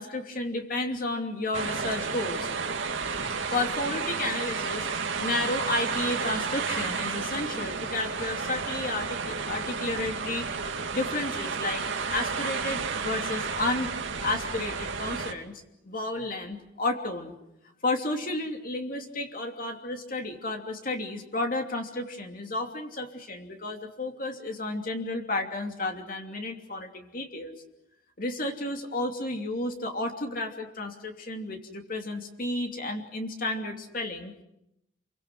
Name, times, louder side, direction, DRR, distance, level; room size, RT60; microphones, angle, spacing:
voice 1, 0.0-2.5 3.2-13.9 14.2-15.5 15.8-17.3 17.8-27.5 28.2-34.3, left 2 dB, 45° left, 3 dB, 2.9 m, -32 dB
sound 1, 1.5-15.3, right 5 dB, 75° right, 2.2 m, -32 dB
29.0 x 23.5 x 6.3 m, 0.83 s
head